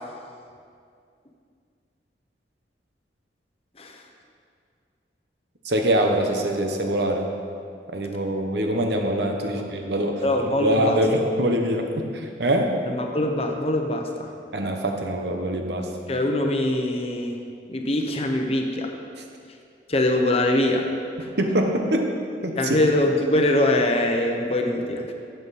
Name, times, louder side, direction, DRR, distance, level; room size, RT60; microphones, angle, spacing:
voice 1, 5.6-7.3 7.9-10.2 10.6-12.7 14.5-15.9 21.4-22.1 22.4-22.8, right 1 dB, 70° right, 3 dB, 1.1 m, -24 dB
voice 2, 10.2-11.0 12.9-14.3 16.1-17.4 17.7-18.9 19.9-20.9 21.2-21.3 22.6-25.1, left 1 dB, 35° left, 3 dB, 0.8 m, -23 dB
12.0 x 7.9 x 4.2 m, 2.3 s
head